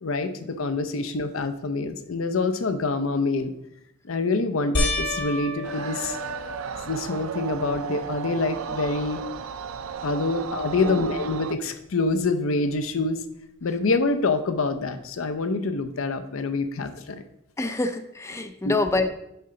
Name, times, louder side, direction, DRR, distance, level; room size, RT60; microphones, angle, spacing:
voice 1, 0.0-3.5 4.0-6.2 6.8-9.2 10.0-13.2 13.6-17.2 18.6-18.7, left 3 dB, 75° left, 9 dB, 0.6 m, -26 dB
sound 1, 4.7-7.3 7.9-8.5 8.9-9.0 12.2-12.3, left 1 dB, 60° left, 1.3 m, -30 dB
sound 2, 5.6-11.6, right 7 dB, 90° right, 0.4 m, -34 dB
voice 2, 10.2-11.1 17.6-19.1, left 2 dB, 15° left, 8 dB, 0.4 m, -28 dB
6.8 x 5.7 x 3.8 m, 0.81 s
head